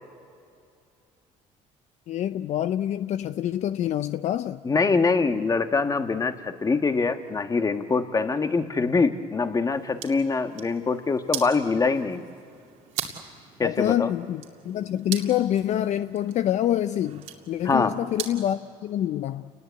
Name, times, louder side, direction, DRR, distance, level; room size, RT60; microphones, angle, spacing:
voice 1, 2.1-4.6 13.6-19.5, left 11 dB, 60° left, 12 dB, 0.6 m, -26 dB
voice 2, 4.6-12.3 13.6-14.1 17.6-17.9, left 4 dB, 25° left, 8 dB, 1.5 m, -24 dB
sound 1, 9.7-18.5, right 10 dB, 75° right, 2.6 m, -40 dB
29.0 x 20.0 x 8.3 m, 2.4 s
supercardioid pair, 85°, 14 cm